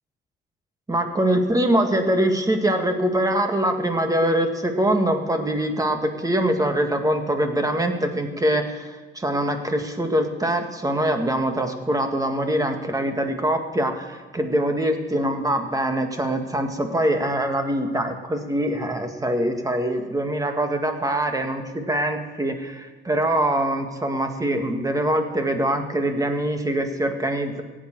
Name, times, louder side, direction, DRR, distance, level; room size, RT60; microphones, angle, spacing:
voice 1, 0.9-27.6, right 1 dB, 15° right, 5 dB, 1.9 m, -23 dB
16.0 x 9.0 x 7.5 m, 1.3 s
cardioid pair, 90°, 20 cm